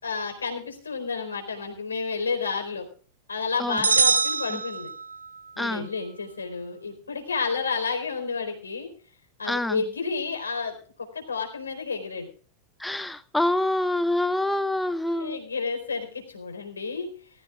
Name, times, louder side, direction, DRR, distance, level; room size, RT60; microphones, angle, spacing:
voice 1, 0.0-2.9 3.3-4.9 5.6-8.9 9.4-12.3 15.1-17.1, left 4 dB, 75° left, 5 dB, 4.3 m, -31 dB
sound 1, 3.8-5.4, right 5 dB, 75° right, 0.7 m, -23 dB
voice 2, 5.6-5.9 9.4-9.8 12.8-15.4, left 1 dB, 5° left, 14 dB, 0.7 m, -26 dB
19.5 x 16.0 x 2.4 m, 0.41 s
figure-of-eight pair, 90°, 0 cm